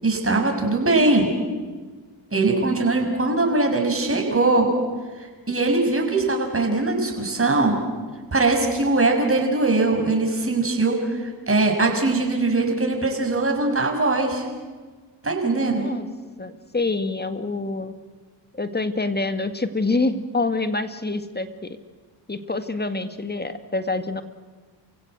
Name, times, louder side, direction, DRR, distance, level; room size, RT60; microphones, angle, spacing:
voice 1, 0.0-1.3 2.3-4.7 5.5-7.8 8.3-14.5 15.2-15.9, right 2 dB, 25° right, 2 dB, 6.6 m, -21 dB
voice 2, 15.4-16.1 16.4-18.0 18.5-21.8 22.3-24.2, left 3 dB, 20° left, 9 dB, 2.0 m, -26 dB
28.5 x 16.0 x 8.0 m, 1.4 s
hypercardioid pair, 50°, 49 cm